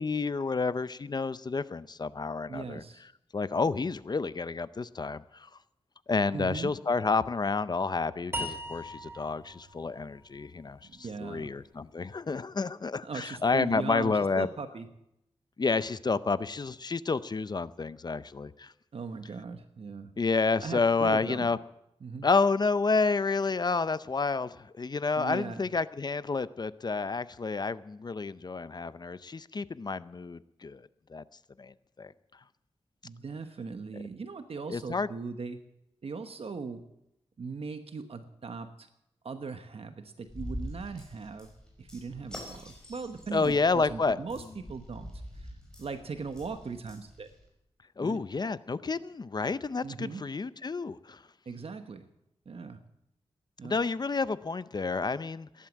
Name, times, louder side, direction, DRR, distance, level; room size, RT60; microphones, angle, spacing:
voice 1, 0.0-2.8 3.3-5.5 6.1-14.5 15.6-18.7 20.2-21.6 22.2-30.8 31.1-31.2 31.6-32.1 33.9-34.0 34.7-35.1 43.3-44.2 48.0-51.2 53.6-55.7, left 4 dB, 40° left, 15 dB, 0.6 m, -30 dB
voice 2, 2.5-3.0 6.3-6.7 10.8-11.5 13.0-14.9 18.9-20.1 20.6-21.5 22.0-22.3 25.2-25.7 33.0-35.6 36.0-36.8 37.4-38.9 39.2-41.5 41.8-45.5 45.8-47.3 48.0-48.2 49.8-50.2 51.4-52.1 52.5-52.8 53.6-53.8, right 4 dB, 65° right, 8 dB, 1.1 m, -39 dB
sound 1, 8.3-11.5, equal, 20° right, 3.2 m, -40 dB
sound 2, 40.3-47.5, equal, 5° left, 5.3 m, -45 dB
17.5 x 11.0 x 7.4 m, 0.83 s
wide cardioid pair, 100°, 11 cm